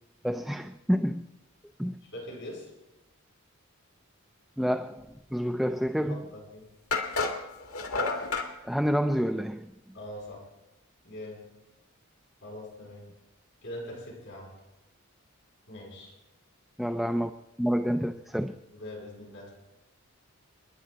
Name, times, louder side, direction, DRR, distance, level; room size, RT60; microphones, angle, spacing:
voice 1, 0.2-1.2 1.8-2.0 4.6-6.3 8.6-9.7 16.8-17.3 17.6-18.6, equal, ahead, 0.4 m, -28 dB
voice 2, 2.0-2.7 6.1-6.7 9.9-10.4 11.0-11.5 12.4-13.1 13.6-14.5 15.7-16.1 18.7-19.5, left 1 dB, 60° left, 7.9 m, -42 dB
sound 1, 6.1-6.2 6.9-8.5, left 4 dB, 80° left, 2.1 m, -30 dB
29.5 x 10.5 x 4.0 m
head